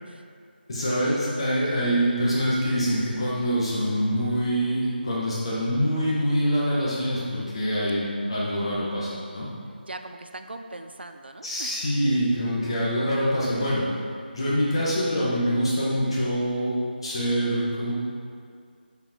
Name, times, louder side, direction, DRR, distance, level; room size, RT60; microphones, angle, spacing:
voice 1, 0.7-9.5 11.4-13.8 14.3-17.9, equal, 30° left, -7 dB, 1.9 m, -25 dB
voice 2, 7.9-8.3 9.8-11.9, right 2 dB, 75° right, 7 dB, 0.6 m, -41 dB
7.9 x 6.1 x 4.7 m, 2.3 s
figure-of-eight pair, 175°, 6 cm